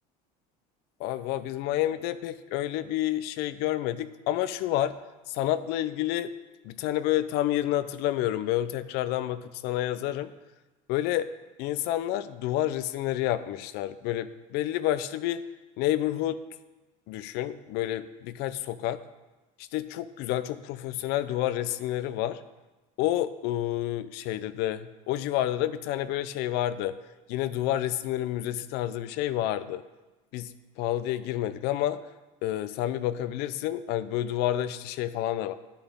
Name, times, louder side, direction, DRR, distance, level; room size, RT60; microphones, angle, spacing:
voice 1, 1.0-4.9 5.3-6.3 6.6-10.3 10.9-11.3 11.6-15.4 15.8-16.4 17.1-19.0 19.7-22.4 23.0-27.0 27.3-29.8 30.3-30.5 30.8-32.0 32.4-35.6, left 13 dB, 65° left, 14 dB, 0.6 m, -29 dB
11.0 x 8.9 x 3.6 m, 1.2 s
supercardioid pair, 120°, 18 cm